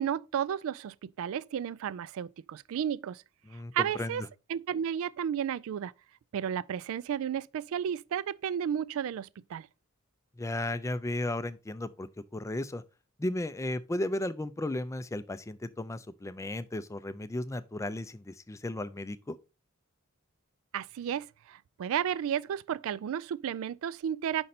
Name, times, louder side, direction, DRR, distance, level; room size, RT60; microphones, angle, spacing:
voice 1, 0.0-3.2 3.7-4.2 4.5-5.9 6.3-9.7 20.7-24.5, right 9 dB, 70° right, 0.3 m, -33 dB
voice 2, 3.5-4.3 10.4-12.8 13.2-19.4, left 1 dB, 15° left, 0.4 m, -35 dB
5.3 x 5.2 x 4.2 m
head